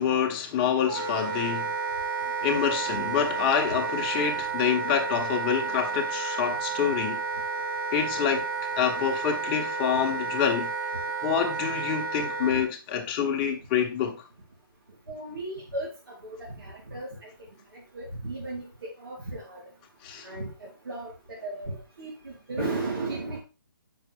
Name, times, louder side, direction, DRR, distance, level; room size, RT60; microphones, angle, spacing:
voice 1, 0.0-1.7 2.4-7.2 7.9-8.5 8.8-10.7 11.2-14.2 20.0-20.3, left 8 dB, 25° left, 1.2 m, -27 dB
Wind instrument woodwind instrument, 0.9-12.7, right 4 dB, 55° right, 2.3 m, -31 dB
voice 2, 15.1-17.5 17.7-19.6 20.2-23.4, right 2 dB, 80° right, 3.6 m, -35 dB
7.3 x 6.3 x 3.5 m
hypercardioid pair, 150°, 12 cm